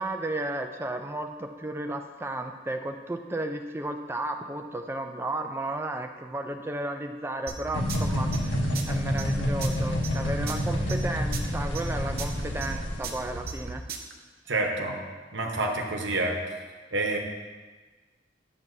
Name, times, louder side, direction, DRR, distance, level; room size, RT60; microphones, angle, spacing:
voice 1, 0.0-13.8, right 1 dB, 15° right, 5 dB, 0.4 m, -33 dB
sound 1, 7.5-14.1, right 5 dB, 55° right, 0.6 m, -37 dB
sound 2, 7.7-13.6, equal, 85° left, 1.4 m, -28 dB
voice 2, 14.5-15.0 15.3-16.4 16.9-17.2, right 2 dB, 70° right, 2 dB, 1.0 m, -28 dB
9.2 x 7.2 x 2.7 m, 1.4 s
head